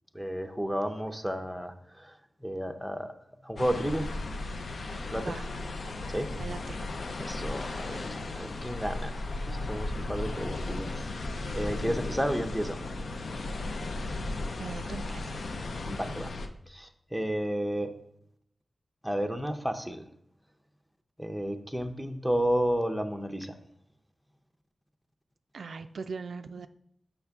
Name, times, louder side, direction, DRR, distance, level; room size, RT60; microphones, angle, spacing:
voice 1, 0.1-3.1 3.4-4.1 5.1-5.4 6.1-6.3 7.2-9.2 9.5-11.1 11.5-12.8 15.8-16.3 16.7-18.0 19.0-20.0 21.2-23.6, equal, ahead, 5 dB, 0.6 m, -32 dB
sound 1, 3.6-16.5, left 2 dB, 70° left, 0.5 m, -35 dB
voice 2, 5.1-5.5 6.3-6.8 14.6-15.4 25.5-26.7, right 4 dB, 85° right, 9 dB, 0.3 m, -40 dB
6.9 x 5.7 x 3.5 m, 0.71 s
wide cardioid pair, 135°, 0 cm